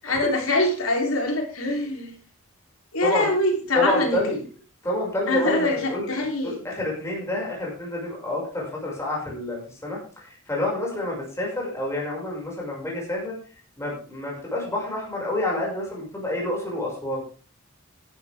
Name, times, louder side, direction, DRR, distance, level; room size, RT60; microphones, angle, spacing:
voice 1, 0.0-2.2 2.9-4.4 5.3-6.7, left 1 dB, 75° left, 2 dB, 3.9 m, -24 dB
voice 2, 3.7-4.4 4.8-13.3 13.8-17.2, left 1 dB, 15° left, -3 dB, 6.5 m, -28 dB
14.5 x 11.5 x 3.7 m, 0.36 s
head